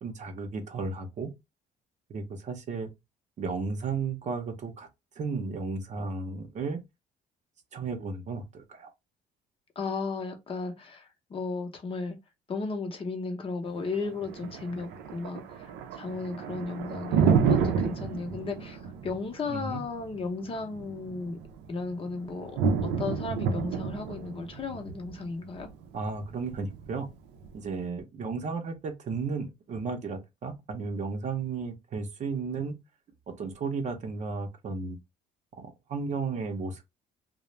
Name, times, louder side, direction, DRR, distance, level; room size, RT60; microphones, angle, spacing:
voice 1, 0.0-1.3 2.1-2.9 3.4-4.9 5.2-6.8 7.7-8.9 19.5-19.8 25.9-27.1 27.5-32.8 33.3-35.0 35.6-36.9, right 4 dB, 45° right, 0.6 m, -34 dB
voice 2, 9.8-12.2 12.5-15.4 15.9-21.4 21.7-25.7, left 4 dB, 30° left, 0.6 m, -35 dB
Thunder, 13.7-27.8, right 6 dB, 85° right, 0.5 m, -30 dB
2.4 x 2.0 x 3.0 m
cardioid pair, 110°, 17 cm